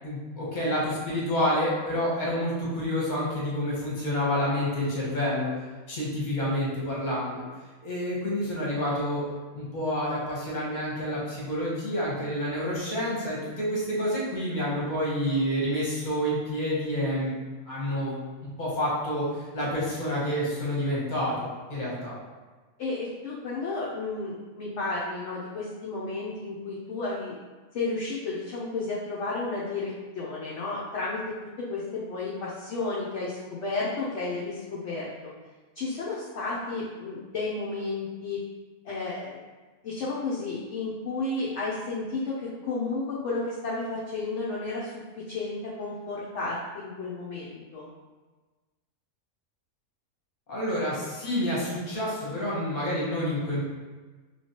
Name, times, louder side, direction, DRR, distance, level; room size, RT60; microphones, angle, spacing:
voice 1, 0.0-5.5 5.9-7.4 7.8-9.2 9.5-17.3 17.6-18.1 18.4-22.2 50.5-53.6, equal, 35° left, -6 dB, 1.0 m, -28 dB
voice 2, 22.8-27.3 27.7-31.2 31.6-35.3 35.8-38.4 38.8-39.4 39.8-44.9 45.3-47.9, left 3 dB, 60° left, -6 dB, 0.8 m, -32 dB
3.1 x 3.1 x 2.8 m, 1.3 s
omnidirectional pair, 1.6 m